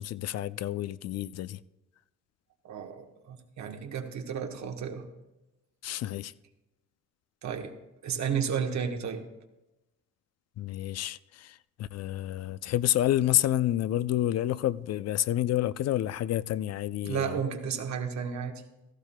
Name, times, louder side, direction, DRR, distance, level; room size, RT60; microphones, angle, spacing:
voice 1, 0.0-1.6 5.8-6.3 10.6-17.4, left 13 dB, 60° left, 0.4 m, -29 dB
voice 2, 2.6-5.1 7.4-7.7 8.0-9.3 17.0-18.6, right 7 dB, 65° right, 1.2 m, -33 dB
16.5 x 13.5 x 2.2 m
cardioid pair, 90°, 30 cm